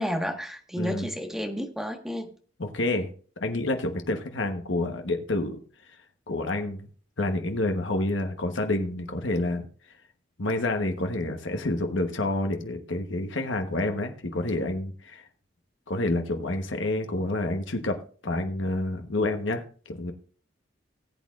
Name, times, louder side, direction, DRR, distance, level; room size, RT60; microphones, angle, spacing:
voice 1, 0.0-2.3, equal, 5° right, 3 dB, 1.5 m, -31 dB
voice 2, 0.8-1.1 2.6-3.1 3.4-5.6 5.9-6.0 6.3-6.9 7.2-9.6 10.4-15.3 15.9-18.0 18.2-20.1, left 2 dB, 80° left, 5 dB, 1.2 m, -28 dB
19.0 x 8.5 x 2.5 m, 0.41 s
head